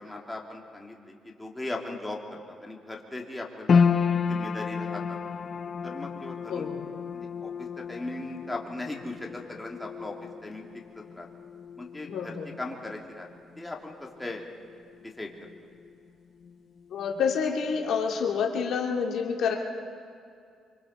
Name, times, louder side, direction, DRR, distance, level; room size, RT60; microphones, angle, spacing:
voice 1, 0.0-3.8 4.3-5.2 5.8-6.7 7.1-10.1 10.4-10.6 11.0-11.3 11.8-13.3 13.6-14.4 15.0-15.3, left 2 dB, 10° left, -1 dB, 2.5 m, -38 dB
sound 1, 3.7-16.1 16.3-17.3 17.7-17.8, left 6 dB, 50° left, 0.6 m, -31 dB
voice 2, 6.5-6.8 12.1-12.5 16.9-19.5, left 6 dB, 75° left, 0 dB, 2.2 m, -28 dB
25.0 x 24.5 x 4.3 m, 2.3 s
cardioid pair, 90°, 0 cm